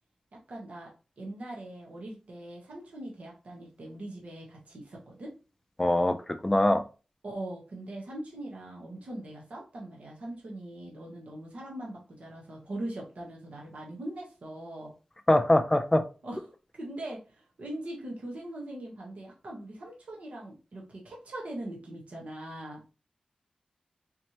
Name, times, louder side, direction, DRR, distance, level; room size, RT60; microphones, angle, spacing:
voice 1, 0.5-5.3 7.2-14.9 16.2-16.4 16.7-22.8, right 1 dB, 70° right, -2 dB, 1.2 m, -41 dB
voice 2, 5.8-6.2 6.4-6.8 15.3-16.0, left 1 dB, 15° left, 8 dB, 0.5 m, -22 dB
4.2 x 3.1 x 2.9 m, 0.32 s
wide cardioid pair, 105°, 2 cm